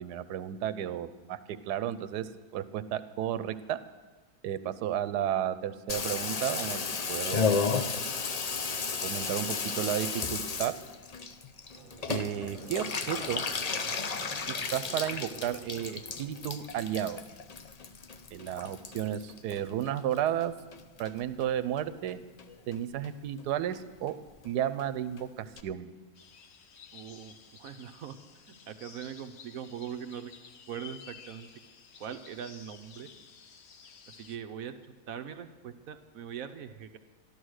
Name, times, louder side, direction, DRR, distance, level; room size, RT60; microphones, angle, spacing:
voice 1, 0.0-3.8 4.4-6.8 7.1-7.7 9.0-10.8 12.1-13.4 14.5-17.2 18.3-20.5 21.0-22.2 22.7-24.1 24.4-25.9, right 10 dB, 85° right, 14 dB, 1.2 m, -33 dB
Water tap faucet / Bathtub (filling or washing), 5.9-20.4 20.7-21.5 21.8-21.9 22.1-22.2 22.4-22.8 23.0-23.1 23.4-23.5 23.7-23.8 24.1-24.2 24.4-24.5 24.8-24.9 25.2-25.3 25.6-25.7, left 5 dB, 75° left, 0.3 m, -34 dB
Conversation / Crowd, 11.7-17.0, right 4 dB, 45° right, 0.8 m, -48 dB
sound 1, 26.1-34.4, left 7 dB, 55° left, 0.9 m, -53 dB
voice 2, 26.9-28.2 28.5-30.3 30.7-31.5 32.0-33.1 34.1-34.7 35.1-37.0, right 8 dB, 65° right, 9 dB, 1.1 m, -41 dB
13.0 x 12.0 x 6.4 m, 1.3 s
omnidirectional pair, 1.7 m